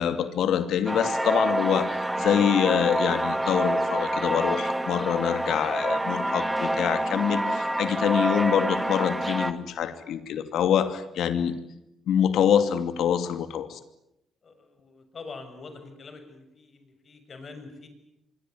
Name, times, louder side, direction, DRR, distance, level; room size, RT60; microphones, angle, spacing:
voice 1, 0.0-11.5 12.1-13.8, left 9 dB, 75° left, 10 dB, 2.7 m, -25 dB
sound 1, 0.9-9.5, right 1 dB, 10° right, 2.0 m, -27 dB
voice 2, 14.4-17.9, left 4 dB, 45° left, 8 dB, 7.1 m, -44 dB
25.0 x 22.5 x 9.7 m, 0.85 s
cardioid pair, 90°, 0 cm